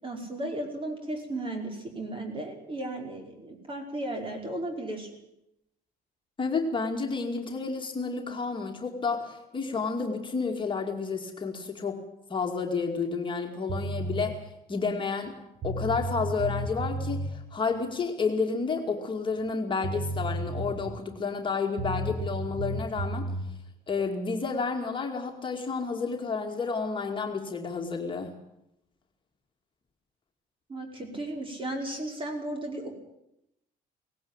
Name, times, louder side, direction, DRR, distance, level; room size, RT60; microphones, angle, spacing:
voice 1, 0.0-5.1 30.7-33.0, right 1 dB, 30° right, 3 dB, 5.2 m, -35 dB
voice 2, 6.4-12.0 12.3-15.3 15.6-23.3 23.9-28.3, left 4 dB, 30° left, 2 dB, 2.4 m, -30 dB
sound 1, 13.7-14.3 15.3-15.4 15.6-17.3 19.5-19.6 19.8-21.0 21.8-23.5, right 1 dB, 55° right, 4.5 m, -32 dB
18.0 x 17.0 x 9.0 m, 0.82 s
cardioid pair, 110°, 17 cm